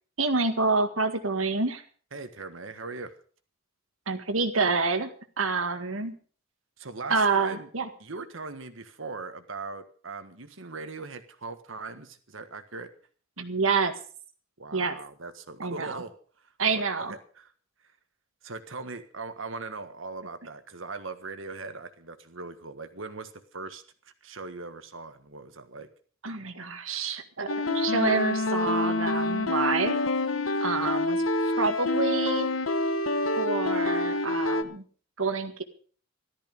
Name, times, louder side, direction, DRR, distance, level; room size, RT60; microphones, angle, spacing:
voice 1, 0.2-1.8 4.1-6.2 7.1-7.9 13.4-14.0 14.7-15.0 15.6-16.0 16.6-17.2 26.2-30.0 30.6-32.5 33.4-34.8 35.2-35.6, right 4 dB, 90° right, 8 dB, 1.8 m, -28 dB
voice 2, 2.1-3.1 6.8-7.7 8.0-12.9 14.6-16.1 16.4-16.8 17.1-17.5 18.4-23.8 24.2-25.9 30.8-30.9 31.4-31.5, right 3 dB, 70° right, 9 dB, 1.6 m, -40 dB
sound 1, 27.5-34.6, left 2 dB, 75° left, 1.1 m, -27 dB
14.0 x 13.0 x 5.4 m, 0.43 s
head